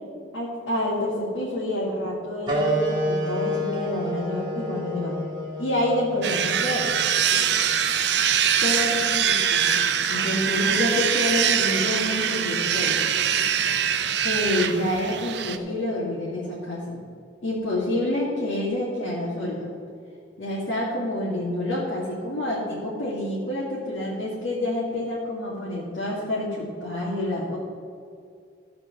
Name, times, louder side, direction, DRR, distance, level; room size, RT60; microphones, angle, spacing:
voice 1, 0.3-5.2 5.6-6.8 8.6-9.7 10.1-13.0 14.2-17.0 17.4-19.7 20.4-27.6, left 1 dB, 80° left, -8 dB, 2.6 m, -28 dB
sound 1, 2.5-7.6, equal, 25° right, 2.2 m, -29 dB
sound 2, 6.2-15.6, right 8 dB, 60° right, 0.6 m, -23 dB
14.5 x 5.0 x 6.9 m, 2.3 s
head